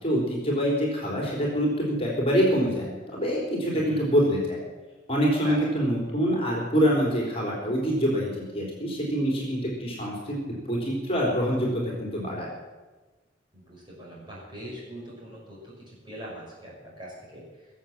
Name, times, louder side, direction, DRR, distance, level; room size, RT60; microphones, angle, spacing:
voice 1, 0.0-4.6 5.1-12.5, equal, 30° left, -2 dB, 3.7 m, -25 dB
voice 2, 13.5-17.7, equal, 25° right, -5 dB, 5.8 m, -42 dB
19.5 x 7.8 x 7.4 m, 1.2 s
head